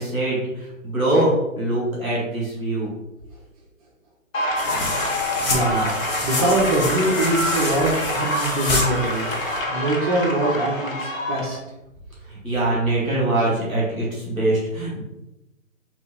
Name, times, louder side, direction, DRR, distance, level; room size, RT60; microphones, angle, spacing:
voice 1, 0.0-2.9 12.2-15.0, right 1 dB, ahead, -26 dB, 0.4 m, -23 dB
sound 1, 4.3-11.6, left 1 dB, 70° left, 1.2 m, -26 dB
sound 2, 4.6-9.6, left 2 dB, 30° left, 0.8 m, -28 dB
voice 2, 5.5-5.9 6.2-9.2 9.7-11.6, right 1 dB, 25° right, -3 dB, 0.9 m, -23 dB
3.2 x 2.7 x 4.1 m, 0.93 s
figure-of-eight pair, 140°, 41 cm